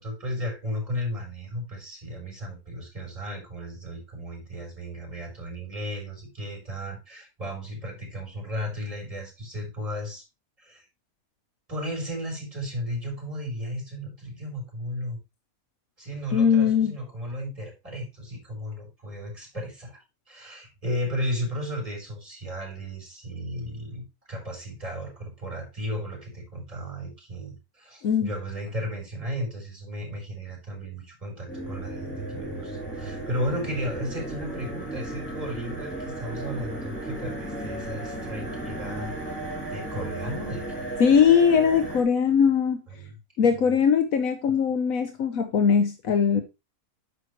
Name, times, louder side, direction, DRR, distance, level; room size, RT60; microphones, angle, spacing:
voice 1, 0.0-10.2 10.6-10.8 11.7-15.2 16.0-20.0 20.3-39.1 39.7-40.9 42.9-43.7, equal, 25° right, 1 dB, 4.0 m, -34 dB
voice 2, 16.3-16.9 28.0-28.3 41.0-42.8 43.4-46.4, left 7 dB, 75° left, 7 dB, 1.2 m, -20 dB
sound 1, 31.5-42.0, right 2 dB, 10° left, 2.9 m, -35 dB
9.4 x 6.8 x 3.1 m, 0.26 s
omnidirectional pair, 1.5 m